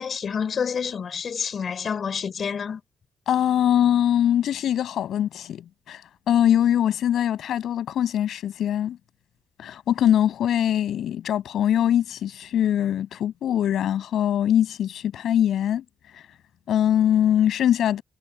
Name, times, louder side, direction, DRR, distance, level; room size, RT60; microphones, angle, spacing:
voice 1, 0.0-2.8, left 6 dB, 50° left, 6.5 m, -28 dB
voice 2, 3.3-6.0 6.3-9.0 9.6-15.8 16.7-18.0, left 10 dB, 70° left, 7.4 m, -22 dB
cardioid pair, 90°, 0 cm